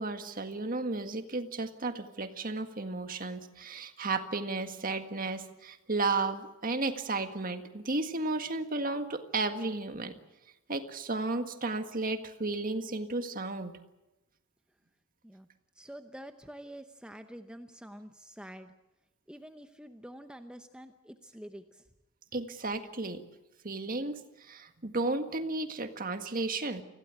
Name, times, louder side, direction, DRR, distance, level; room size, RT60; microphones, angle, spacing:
voice 1, 0.0-10.2 10.7-13.7 22.3-23.2 23.6-26.8, right 3 dB, 40° right, 7 dB, 1.8 m, -33 dB
voice 2, 15.8-18.7 19.3-21.8 22.3-22.5, equal, 5° right, 7 dB, 0.9 m, -47 dB
25.5 x 16.5 x 8.4 m, 0.99 s
head